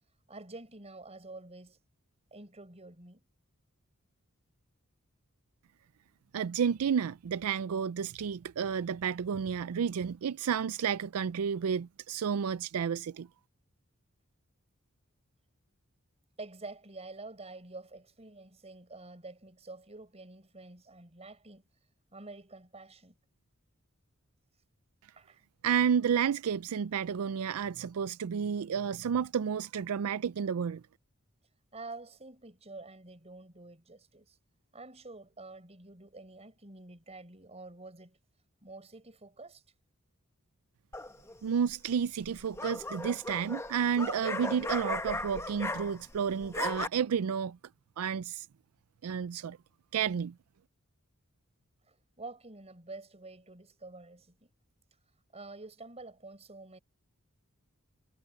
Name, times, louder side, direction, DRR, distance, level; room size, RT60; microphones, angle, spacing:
voice 1, 0.3-1.8 2.3-3.2 16.4-21.7 22.1-23.2 25.2-25.4 31.7-34.4 34.7-38.2 38.6-39.6 51.9-54.5 55.3-56.8, right 3 dB, 30° right, 5.3 m, -48 dB
voice 2, 6.3-13.3 25.6-30.8 41.4-47.6 48.0-48.5 49.0-49.6 49.9-50.3, right 7 dB, 75° right, 0.4 m, -31 dB
sound 1, 40.9-41.4 42.2-46.2 46.4-46.9, left 2 dB, 10° left, 1.0 m, -36 dB
head